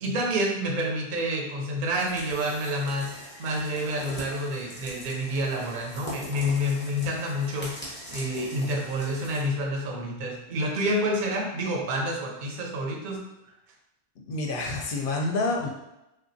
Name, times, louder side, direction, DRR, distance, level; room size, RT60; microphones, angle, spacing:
voice 1, 0.0-3.1 3.4-13.2, equal, 55° right, 0 dB, 0.6 m, -28 dB
sound 1, 1.9-9.5, equal, 10° left, 0.6 m, -42 dB
voice 2, 14.3-15.7, left 2 dB, 60° left, 1 dB, 0.6 m, -28 dB
3.2 x 2.3 x 2.6 m, 0.89 s
omnidirectional pair, 1.2 m